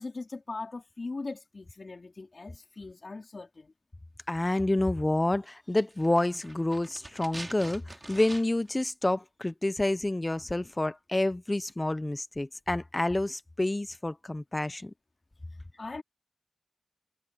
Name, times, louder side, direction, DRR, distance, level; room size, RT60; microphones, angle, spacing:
voice 1, 0.0-3.7 15.5-16.0, left 3 dB, 75° left, 3.6 m, -40 dB
voice 2, 4.3-14.9, left 1 dB, 30° left, 0.8 m, -28 dB
sound 1, 5.9-8.8 9.0-9.1, right 2 dB, 40° right, 3.4 m, -45 dB
wide cardioid pair, 60°, 0 cm